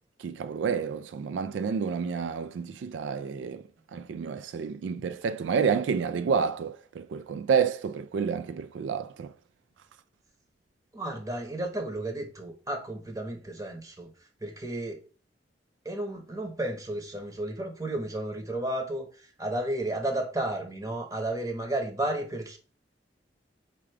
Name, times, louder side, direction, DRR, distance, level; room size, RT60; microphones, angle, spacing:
voice 1, 0.2-3.6 3.9-9.3, right 6 dB, 90° right, 0.3 m, -29 dB
voice 2, 10.9-14.1 14.4-15.0 15.8-22.6, right 1 dB, 20° right, 0.9 m, -33 dB
4.8 x 2.2 x 4.8 m
head